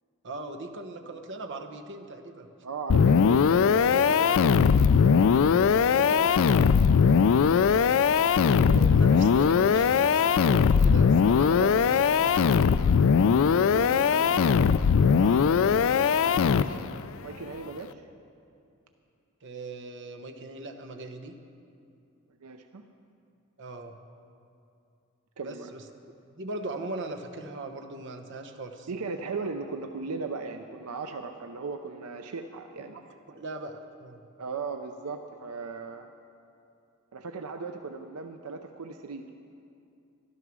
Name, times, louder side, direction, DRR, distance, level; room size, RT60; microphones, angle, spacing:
voice 1, 0.2-2.5 8.6-12.5 15.2-16.9 19.4-21.4 23.6-24.0 25.4-25.8 26.3-28.9 32.8-33.0 33.3-34.2, right 2 dB, 55° right, 4 dB, 1.0 m, -40 dB
voice 2, 2.6-5.3 5.9-6.8 13.6-14.4 17.2-18.0 22.4-22.8 25.4-25.7 28.9-33.0 34.4-36.1 37.1-39.3, right 4 dB, 85° right, 6 dB, 0.6 m, -37 dB
sound 1, 2.9-17.0, left 6 dB, 65° left, 0.4 m, -20 dB
12.5 x 12.0 x 6.2 m, 2.5 s
head